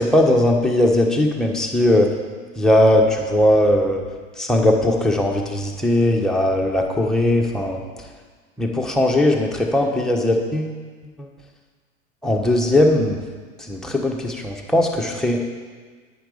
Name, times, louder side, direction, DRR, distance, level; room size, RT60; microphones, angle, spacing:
voice 1, 0.0-2.1 2.6-4.0 4.4-7.8 8.6-10.7 11.2-11.3 12.2-13.2 13.6-15.4, left 1 dB, ahead, -1 dB, 1.4 m, -19 dB
10.0 x 9.8 x 5.0 m, 1.5 s
figure-of-eight pair, 85°, 41 cm